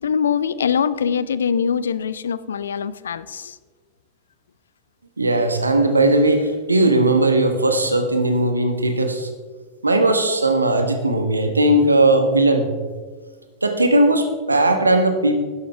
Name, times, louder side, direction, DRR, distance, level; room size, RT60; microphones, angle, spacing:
voice 1, 0.0-3.6, left 7 dB, 70° left, 17 dB, 0.4 m, -23 dB
voice 2, 5.2-9.3 9.8-12.7 13.6-15.4, right 2 dB, 80° right, 7 dB, 1.2 m, -18 dB
12.5 x 11.0 x 3.5 m, 1.4 s
figure-of-eight pair, 90°, 0 cm